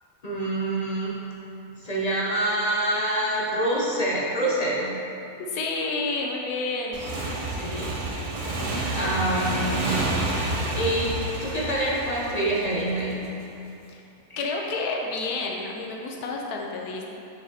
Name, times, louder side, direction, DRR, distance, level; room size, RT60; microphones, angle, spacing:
voice 1, 0.2-1.1 1.8-5.0 7.6-7.9 8.9-9.9 10.7-13.2, right 1 dB, 40° left, -5 dB, 0.6 m, -26 dB
voice 2, 5.5-7.0 13.9-14.0 14.4-17.0, left 3 dB, 85° left, 0 dB, 1.3 m, -29 dB
Motorcycle / Engine, 6.9-13.3, right 2 dB, 40° right, 0.5 m, -29 dB
7.1 x 4.9 x 2.8 m, 2.7 s
omnidirectional pair, 1.6 m